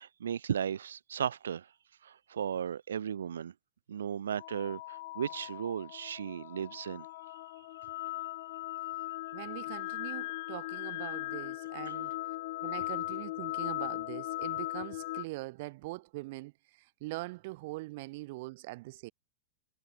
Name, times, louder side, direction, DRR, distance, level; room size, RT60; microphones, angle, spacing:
voice 1, 0.0-1.7 2.0-3.5 3.9-7.1, right 8 dB, 65° right, 1.5 m, -35 dB
sound 1, 4.4-15.2, left 19 dB, 50° left, 0.7 m, -38 dB
voice 2, 9.3-12.2 12.6-19.1, right 22 dB, 50° right, 2.1 m, -42 dB
figure-of-eight pair, 90°, 0 cm